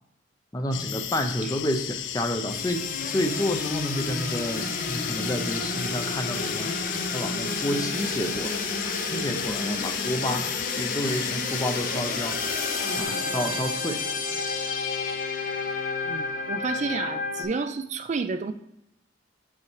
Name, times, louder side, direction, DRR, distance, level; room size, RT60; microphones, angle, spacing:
voice 1, 0.5-10.5 10.7-12.4 12.9-14.0, left 1 dB, 20° left, 6 dB, 0.6 m, -30 dB
sound 1, 0.7-13.0, left 11 dB, 70° left, 0.4 m, -35 dB
sound 2, 2.5-17.4, left 3 dB, 45° left, 0.8 m, -30 dB
voice 2, 10.2-10.5 16.0-18.5, right 4 dB, 40° right, 10 dB, 0.4 m, -31 dB
8.3 x 5.6 x 3.1 m, 0.82 s
head